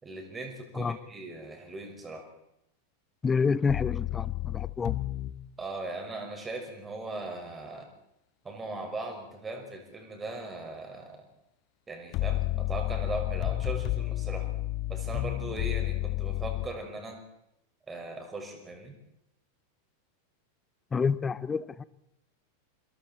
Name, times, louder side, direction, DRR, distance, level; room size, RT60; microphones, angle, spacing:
voice 1, 0.0-2.3 5.6-7.9 8.4-11.2 11.9-14.5 14.9-17.2 17.9-18.9, right 2 dB, 15° right, 5.6 m, -39 dB
voice 2, 3.2-5.0 20.9-21.8, left 5 dB, 15° left, 0.8 m, -28 dB
sound 1, 3.7-5.4 12.1-16.7, left 16 dB, 40° left, 1.2 m, -31 dB
28.0 x 23.0 x 4.4 m
figure-of-eight pair, 90°, 0 cm